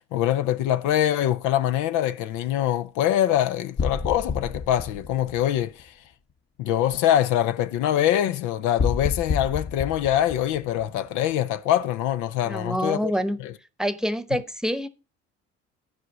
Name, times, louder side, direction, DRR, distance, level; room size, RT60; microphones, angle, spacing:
voice 1, 0.0-5.9 6.6-13.1 13.4-13.5, left 11 dB, 65° left, 0.7 m, -24 dB
sound 1, 3.8-6.1 8.8-11.3, left 5 dB, 35° left, 1.0 m, -30 dB
voice 2, 12.4-13.4 13.8-14.9, equal, ahead, 1.0 m, -26 dB
12.0 x 4.9 x 6.1 m
hypercardioid pair, 65°, 32 cm